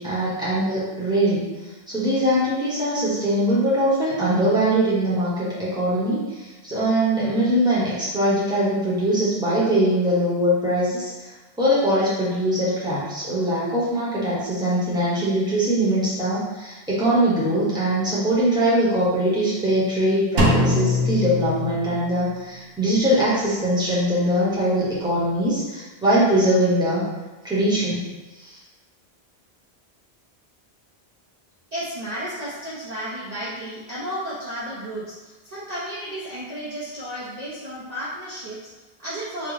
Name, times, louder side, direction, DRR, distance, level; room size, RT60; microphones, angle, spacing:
voice 1, 0.0-1.4 1.9-6.2 6.6-11.1 11.6-27.1 27.4-28.0, right 1 dB, 5° right, -8 dB, 0.9 m, -22 dB
Drum, 20.4-22.3, left 2 dB, 70° right, 0.9 m, -22 dB
voice 2, 31.7-39.5, equal, 45° right, -9 dB, 0.7 m, -33 dB
3.9 x 2.2 x 3.2 m, 1.2 s
omnidirectional pair, 1.1 m